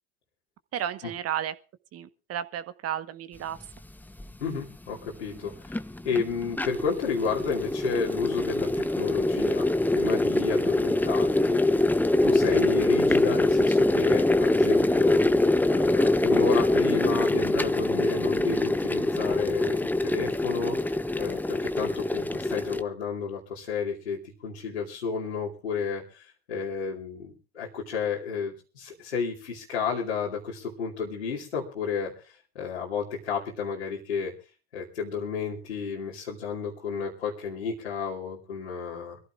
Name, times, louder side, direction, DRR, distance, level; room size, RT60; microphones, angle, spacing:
voice 1, 0.7-1.5 1.9-3.6, right 10 dB, 45° right, 1.2 m, -33 dB
sound 1, 4.2-4.3 5.4-22.8, left 2 dB, 5° left, 0.8 m, -24 dB
voice 2, 4.4-5.8 6.0-9.7 9.9-15.4 15.7-34.3 34.7-39.2, left 5 dB, 85° left, 2.7 m, -32 dB
25.0 x 15.0 x 2.5 m
hypercardioid pair, 65°, 33 cm